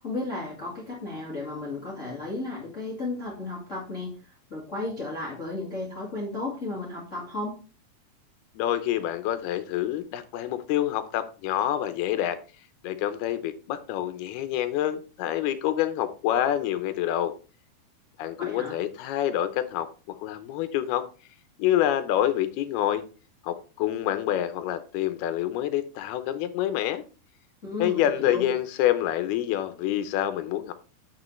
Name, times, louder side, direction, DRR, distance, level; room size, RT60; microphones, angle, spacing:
voice 1, 0.0-7.6 18.4-18.8 27.6-28.4, left 2 dB, 40° left, -3 dB, 1.0 m, -34 dB
voice 2, 8.6-12.4 12.8-17.3 18.2-19.9 20.2-21.1 21.6-23.0 23.4-27.0 27.8-30.7, left 12 dB, 75° left, 10 dB, 2.6 m, -27 dB
8.6 x 6.7 x 3.2 m, 0.35 s
omnidirectional pair, 4.9 m